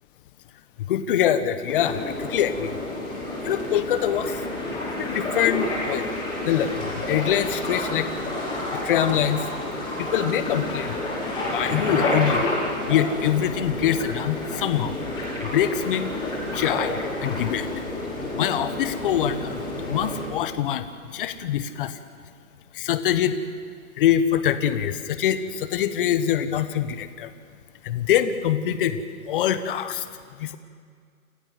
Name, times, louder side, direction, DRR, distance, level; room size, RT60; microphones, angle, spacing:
voice 1, 0.8-2.8 3.4-4.5 5.0-6.1 6.4-8.1 8.7-9.5 10.0-10.9 11.5-12.4 12.9-15.0 15.4-17.7 18.4-19.6 19.9-20.8 21.1-22.0 22.7-23.4 24.0-27.3 27.8-30.1 30.4-30.6, left 10 dB, 35° left, 11 dB, 1.4 m, -24 dB
sound 1, 1.7-20.2, left 1 dB, 10° left, 6.1 m, -29 dB
28.0 x 15.0 x 7.9 m, 2.1 s
hypercardioid pair, 150°, 43 cm